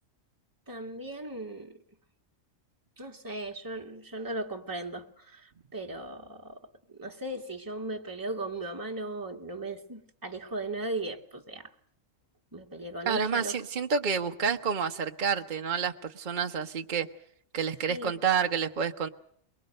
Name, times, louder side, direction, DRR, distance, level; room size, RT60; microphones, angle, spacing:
voice 1, 0.7-1.8 3.0-11.7 12.5-13.6 17.9-18.1, right 2 dB, 15° right, 1.8 m, -37 dB
voice 2, 13.1-17.1 17.5-19.1, right 6 dB, 40° right, 1.1 m, -29 dB
23.5 x 22.5 x 6.6 m
omnidirectional pair, 1.3 m